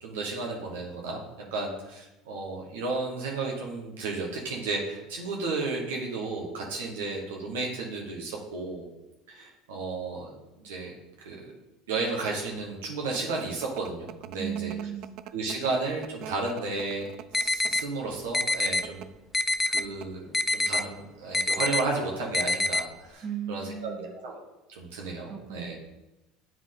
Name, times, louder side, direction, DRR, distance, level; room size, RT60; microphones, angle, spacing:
voice 1, 0.0-1.2 1.5-8.9 9.3-10.3 10.6-10.9 11.2-11.5 11.9-14.7 15.3-17.1 17.3-19.1 19.7-25.8, right 3 dB, 90° right, -1 dB, 1.2 m, -33 dB
sound 1, 12.5-18.0 18.7-19.1 19.4-19.5 19.8-20.3, right 13 dB, 60° right, 0.3 m, -44 dB
voice 2, 14.4-15.1 23.2-24.1 25.3-25.8, right 9 dB, 45° right, 1 dB, 1.6 m, -36 dB
sound 2, 17.3-17.8 18.3-18.8 19.3-19.8 20.3-20.8 21.3-21.8 22.3-22.8, left 2 dB, 15° left, 0.4 m, -25 dB
7.8 x 4.7 x 3.8 m, 0.98 s
supercardioid pair, 90°, 0 cm